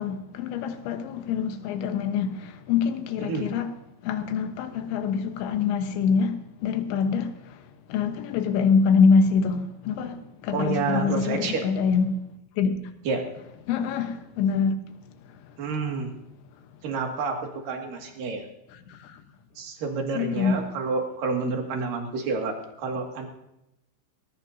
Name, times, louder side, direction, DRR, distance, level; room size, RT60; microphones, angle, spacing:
voice 1, 0.0-3.7 4.0-7.6 7.9-12.2 12.6-12.8 13.7-14.8 18.9-19.2 20.2-20.6, left 5 dB, 80° left, 3.4 m, -25 dB
voice 2, 3.2-3.5 10.5-11.7 13.1-13.2 15.6-16.1 16.8-17.4 17.7-18.5 19.6-23.3, right 4 dB, 55° right, 3.5 m, -29 dB
19.5 x 18.5 x 2.8 m
omnidirectional pair, 5.2 m